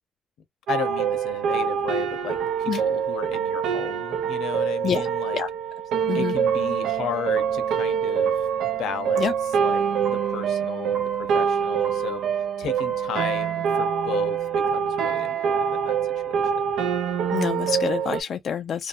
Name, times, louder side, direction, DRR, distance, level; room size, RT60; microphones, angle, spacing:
voice 1, 0.7-5.4 6.1-8.5 8.8-12.2 12.6-14.4 14.7-16.0 16.2-16.7, left 8 dB, 85° left, 0.8 m, -34 dB
sound 1, 0.7-18.2, right 7 dB, 80° right, 0.6 m, -25 dB
voice 2, 17.3-18.9, left 8 dB, 55° left, 0.3 m, -27 dB
2.7 x 2.1 x 2.5 m
cardioid pair, 90°, 0 cm